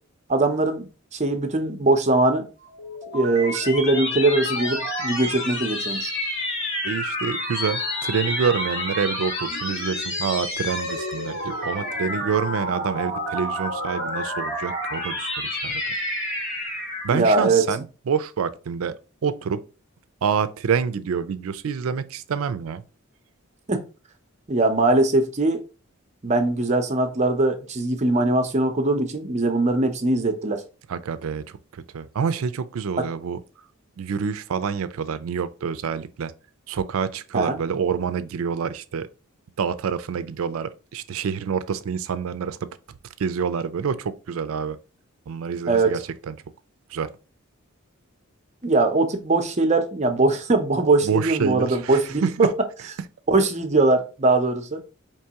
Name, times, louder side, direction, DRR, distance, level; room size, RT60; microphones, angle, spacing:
voice 1, 0.3-2.5 3.1-6.1 17.1-17.6 23.7-23.8 24.5-25.6 26.2-30.6 37.3-37.6 45.7-45.9 48.6-52.5 53.3-54.8, right 2 dB, 35° right, 0.6 m, -21 dB
sound 1, 2.6-17.3, left 1 dB, 60° left, 1.8 m, -29 dB
voice 2, 6.8-15.8 17.0-19.6 20.2-22.8 30.9-33.4 34.0-36.3 36.7-39.1 39.6-42.6 43.2-44.8 45.3-46.0 46.3-46.4 46.9-47.1 51.0-52.5, right 6 dB, 75° right, 0.4 m, -27 dB
4.6 x 3.0 x 2.8 m
head